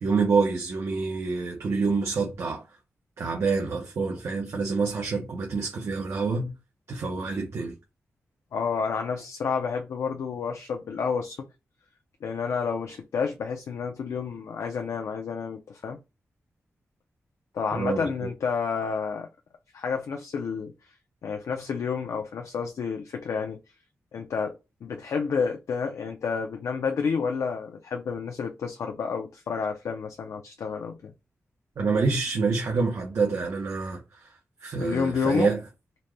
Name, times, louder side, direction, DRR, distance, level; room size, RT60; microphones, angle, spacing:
voice 1, 0.0-2.6 3.2-6.5 6.9-7.7 17.7-18.3 31.8-34.3 34.6-35.6, right 4 dB, 65° right, 0.8 m, -27 dB
voice 2, 8.5-11.4 12.2-16.0 17.5-19.3 19.7-20.9 21.2-23.6 24.1-31.1 34.8-35.5, left 5 dB, 80° left, 0.5 m, -30 dB
4.0 x 2.2 x 3.1 m
wide cardioid pair, 170°, 5 cm